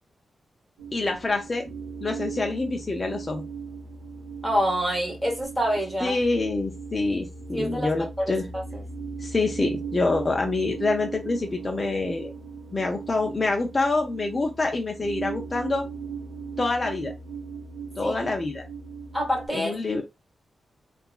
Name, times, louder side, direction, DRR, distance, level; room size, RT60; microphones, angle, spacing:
sound 1, 0.8-19.5, right 5 dB, 45° right, 1.1 m, -38 dB
voice 1, 0.9-1.7 2.0-3.4 6.0-8.5 9.2-12.3 12.7-15.9 16.6-17.1 18.0-18.6 19.5-20.0, left 3 dB, 25° left, 0.4 m, -26 dB
voice 2, 4.4-6.2 7.5-8.8 18.0-18.2 19.1-19.8, equal, 10° right, 0.9 m, -27 dB
2.8 x 2.3 x 2.3 m
wide cardioid pair, 150°, 0 cm